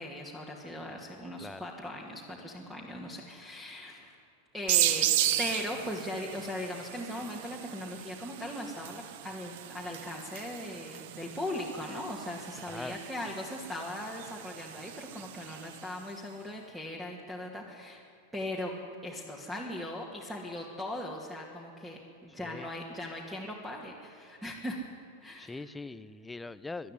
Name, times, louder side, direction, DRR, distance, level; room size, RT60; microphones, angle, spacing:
voice 1, 0.0-4.2 4.5-5.1 5.4-18.0 18.3-18.7 19.0-24.9 25.2-25.6, left 1 dB, 5° right, -1 dB, 2.3 m, -39 dB
sound 1, 4.7-16.0, right 13 dB, 50° right, 0.8 m, -35 dB
voice 2, 12.7-13.0 22.4-22.7 25.4-26.9, left 3 dB, 10° left, 16 dB, 0.6 m, -41 dB
21.0 x 12.5 x 9.9 m, 2.4 s
figure-of-eight pair, 90°, 0 cm